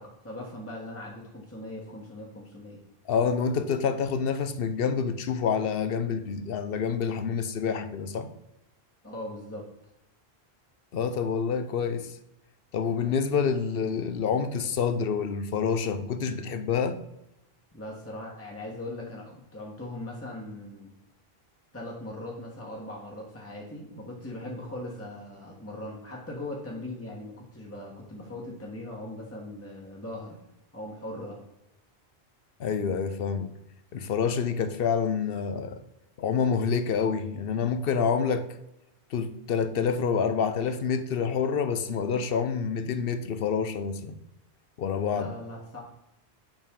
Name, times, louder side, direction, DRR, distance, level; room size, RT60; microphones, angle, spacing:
voice 1, 0.0-2.8 9.0-9.7 17.7-20.9 21.7-30.4 30.7-31.4 45.1-45.8, left 1 dB, 15° left, 1.3 m, -40 dB
voice 2, 3.1-8.3 10.9-12.2 12.7-17.0 32.6-33.5 33.9-35.8 36.2-38.4 39.1-44.2 44.8-45.3, left 6 dB, 65° left, 0.9 m, -27 dB
7.2 x 5.5 x 3.7 m
omnidirectional pair, 1.1 m